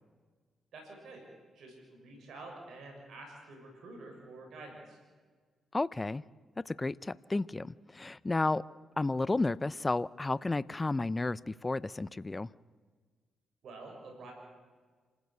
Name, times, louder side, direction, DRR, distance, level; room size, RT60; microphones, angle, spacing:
voice 1, 0.7-1.2 1.5-5.0 13.6-14.3, right 2 dB, 75° right, 1 dB, 6.7 m, -48 dB
voice 2, 5.7-6.2 6.7-8.6 9.0-12.5, left 2 dB, 25° left, 19 dB, 0.5 m, -32 dB
27.0 x 14.5 x 8.2 m, 1.5 s
supercardioid pair, 55°, 0 cm